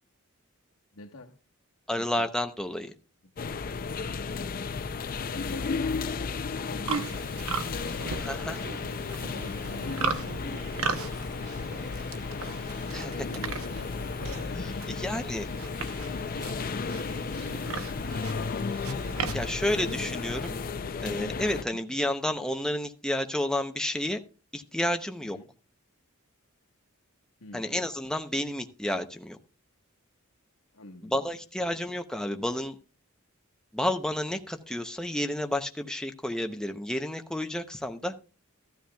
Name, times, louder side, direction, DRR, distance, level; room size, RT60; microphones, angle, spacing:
voice 1, 0.9-1.4 1.9-2.3 5.3-6.1 6.6-8.3 9.7-10.0 11.9-20.1 25.2-25.5 27.4-27.8 30.7-31.6, left 1 dB, 90° left, 1.3 m, -47 dB
voice 2, 1.9-2.9 8.2-8.6 12.9-13.1 15.0-15.5 19.3-20.6 21.0-24.2 24.5-25.4 27.5-29.4 31.1-32.8 33.7-38.1, left 1 dB, 5° left, 0.7 m, -30 dB
sound 1, 3.4-21.6, left 4 dB, 45° left, 0.5 m, -34 dB
Livestock farm animals working animals, 6.8-20.5, right 5 dB, 75° right, 0.8 m, -37 dB
14.5 x 13.0 x 2.3 m
head